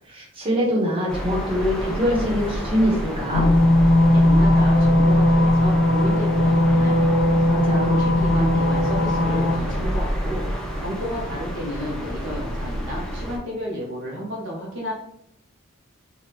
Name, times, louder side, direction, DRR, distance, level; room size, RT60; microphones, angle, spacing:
voice 1, 0.1-3.5 7.5-8.0, equal, 25° right, -5 dB, 1.0 m, -24 dB
sound 1, 1.1-13.4, equal, 5° left, 0.4 m, -29 dB
sound 2, 3.3-9.6, left 1 dB, 75° left, 0.4 m, -18 dB
voice 2, 4.1-7.3 7.8-10.4 10.8-14.9, equal, 60° right, -3 dB, 0.7 m, -32 dB
3.3 x 2.3 x 2.8 m, 0.72 s
head